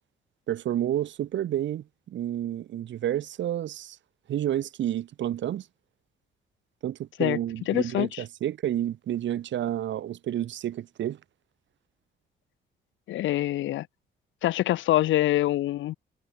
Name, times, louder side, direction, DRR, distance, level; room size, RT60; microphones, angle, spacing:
voice 1, 0.5-4.0 4.3-5.7 6.8-11.2, right 11 dB, 70° right, 1.6 m, -30 dB
voice 2, 7.7-8.2 13.1-13.9 14.4-15.9, left 15 dB, 75° left, 0.6 m, -25 dB
cardioid pair, 90°, 20 cm